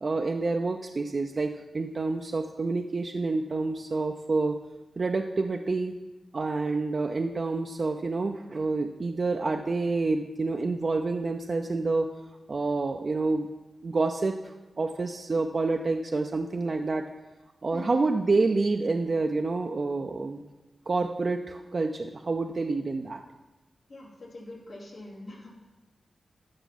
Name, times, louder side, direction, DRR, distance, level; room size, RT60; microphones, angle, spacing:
voice 1, 0.0-4.6 5.0-5.9 6.3-12.1 12.5-13.5 13.8-17.1 17.6-20.4 20.9-23.2, right 3 dB, 50° right, 4 dB, 0.5 m, -28 dB
voice 2, 17.7-18.1 23.9-25.5, left 1 dB, 75° left, -5 dB, 3.0 m, -43 dB
14.0 x 5.7 x 4.2 m, 1.1 s
cardioid pair, 55°, 0 cm